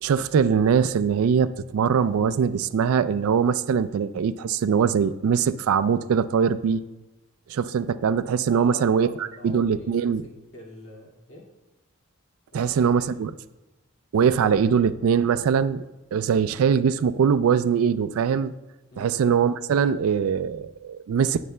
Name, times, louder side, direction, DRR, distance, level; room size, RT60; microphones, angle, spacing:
voice 1, 0.0-6.8 7.5-10.2 12.5-13.3 14.1-15.8 16.1-18.5 19.0-21.4, right 7 dB, 80° right, 13 dB, 0.3 m, -22 dB
voice 2, 8.5-11.5 12.5-13.1 18.9-19.2, left 1 dB, 65° left, -3 dB, 2.1 m, -44 dB
19.0 x 6.6 x 2.2 m, 1.0 s
head